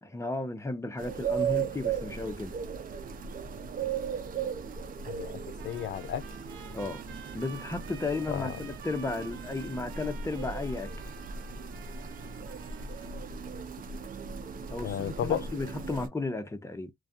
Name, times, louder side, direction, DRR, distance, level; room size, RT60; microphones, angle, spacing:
voice 1, 0.0-2.6 6.7-7.0 7.3-10.9 14.7-16.9, left 3 dB, 15° left, 0.6 m, -34 dB
sound 1, 1.0-16.1, right 6 dB, 45° right, 0.6 m, -37 dB
voice 2, 5.1-6.2 8.3-8.6 14.8-15.4, left 10 dB, 65° left, 0.5 m, -33 dB
Trumpet, 5.6-13.2, right 8 dB, 75° right, 0.9 m, -50 dB
2.3 x 2.2 x 2.6 m
cardioid pair, 90°, 20 cm